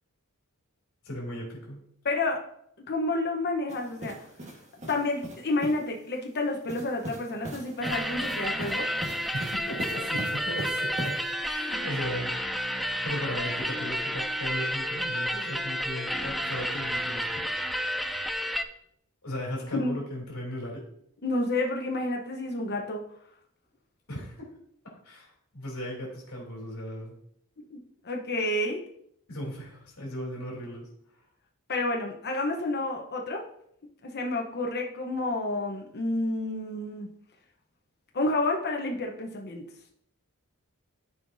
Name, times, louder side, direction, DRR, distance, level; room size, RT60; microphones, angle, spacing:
voice 1, 1.0-1.8 9.3-12.3 13.0-17.6 19.2-20.8 24.1-24.4 25.0-27.1 29.3-30.9, equal, 75° left, -2 dB, 2.9 m, -37 dB
voice 2, 2.0-2.4 2.9-4.2 4.9-8.9 19.7-20.0 21.2-23.0 27.6-28.8 31.7-33.4 34.0-37.1 38.1-39.6, left 2 dB, 50° left, 1 dB, 1.0 m, -30 dB
sound 1, 3.7-5.9 6.7-11.3, right 1 dB, 35° right, 1.4 m, -40 dB
sound 2, 7.8-18.6, equal, ahead, 0.4 m, -31 dB
13.5 x 4.8 x 2.7 m, 0.70 s
head